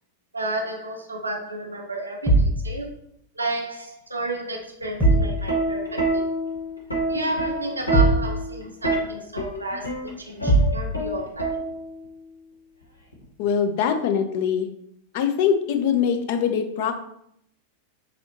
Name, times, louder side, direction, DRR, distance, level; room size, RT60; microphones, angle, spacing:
voice 1, 0.3-2.9 3.3-6.2 7.1-11.6, right 2 dB, 80° right, 1 dB, 0.6 m, -32 dB
sound 1, 2.3-2.6 5.0-5.4 7.9-8.3 10.5-10.8, right 2 dB, 5° left, 1.0 m, -18 dB
Plucked string instrument, 4.8-12.1 13.1-13.4, right 1 dB, 80° left, 0.7 m, -27 dB
voice 2, 13.4-14.7 15.1-16.9, left 7 dB, 50° left, 7 dB, 0.4 m, -23 dB
4.1 x 2.7 x 2.6 m, 0.72 s
figure-of-eight pair, 90°, 0 cm